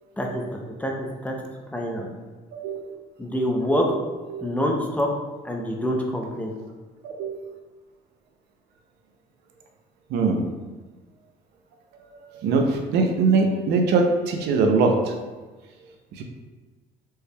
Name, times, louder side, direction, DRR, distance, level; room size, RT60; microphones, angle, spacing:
voice 1, 0.2-1.3 1.7-2.1 3.2-4.0 4.4-5.1 5.4-6.5, equal, 10° left, 0 dB, 0.5 m, -26 dB
voice 2, 2.5-2.9 3.8-4.0 4.3-4.5 7.0-7.5 10.1-10.4 11.9-15.1 16.1-16.2, right 4 dB, 80° right, 3 dB, 0.6 m, -23 dB
4.4 x 3.2 x 2.2 m, 1.3 s
cardioid pair, 110°, 17 cm